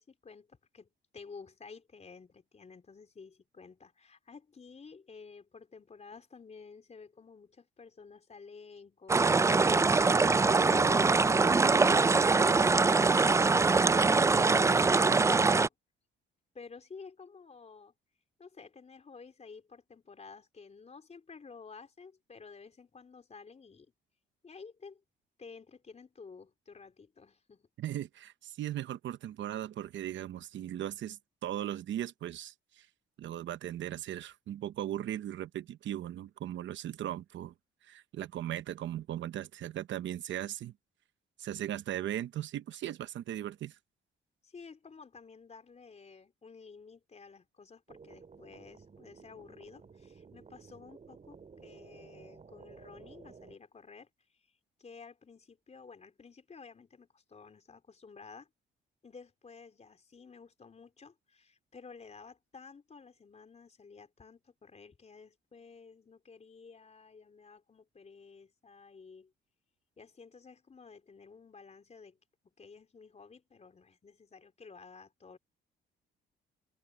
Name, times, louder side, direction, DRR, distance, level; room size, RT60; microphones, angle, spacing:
voice 1, 0.0-13.0 16.5-17.9 18.4-23.9 24.4-25.0 25.4-27.7 44.4-54.1 54.8-58.5 59.0-69.3 70.0-72.2 72.6-75.4, left 5 dB, 35° left, 4.2 m, -52 dB
sound 1, 9.1-15.7, right 4 dB, 15° right, 0.3 m, -23 dB
voice 2, 27.8-32.9 33.2-37.5 37.8-40.7 41.4-43.8, right 12 dB, 70° right, 0.9 m, -38 dB
sound 2, 47.9-53.6, right 5 dB, 35° right, 3.5 m, -54 dB
cardioid pair, 90°, 20 cm